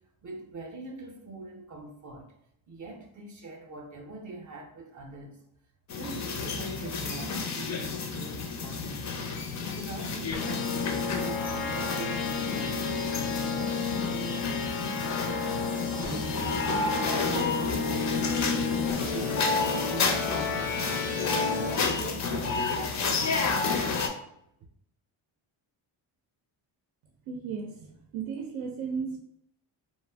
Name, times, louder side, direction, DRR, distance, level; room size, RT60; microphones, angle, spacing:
voice 1, 0.2-2.3 2.7-5.4 5.9-15.6 15.9-23.6, right 3 dB, 40° right, 2 dB, 0.5 m, -43 dB
sound 1, 5.9-24.1, left 4 dB, 40° left, 0.4 m, -31 dB
sound 2, 10.3-21.7, left 4 dB, 90° left, 0.6 m, -31 dB
voice 2, 27.3-29.2, right 6 dB, 85° right, 2 dB, 0.6 m, -35 dB
2.5 x 2.1 x 3.2 m, 0.75 s
cardioid pair, 105°, 48 cm